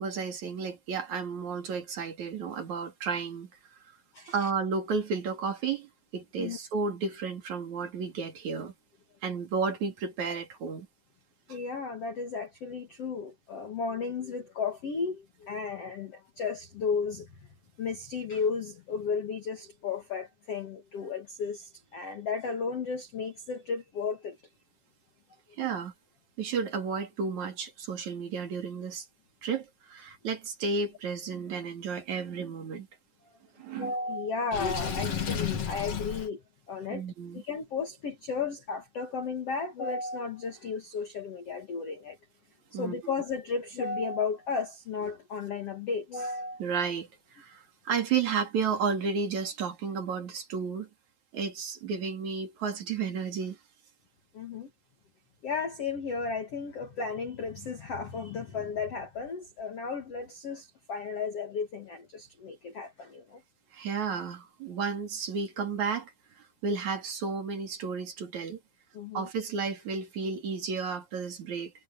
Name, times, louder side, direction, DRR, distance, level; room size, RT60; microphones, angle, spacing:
voice 1, 0.0-3.5 4.3-8.7 9.2-10.9 25.6-25.9 26.4-29.1 29.4-32.9 33.6-33.9 36.9-37.4 42.7-43.0 46.6-47.1 47.3-50.9 51.3-53.6 63.7-66.1 66.6-68.6 69.1-71.7, right 5 dB, 45° right, 3.4 m, -32 dB
voice 2, 11.5-17.5 17.8-24.4 25.6-25.7 33.7-36.4 36.7-37.0 37.3-42.2 42.7-46.6 54.3-54.7 55.4-63.4 68.9-69.3, left 5 dB, 85° left, 1.3 m, -34 dB
Water / Sink (filling or washing), 34.5-36.3, left 7 dB, 45° left, 2.2 m, -32 dB
omnidirectional pair, 5.6 m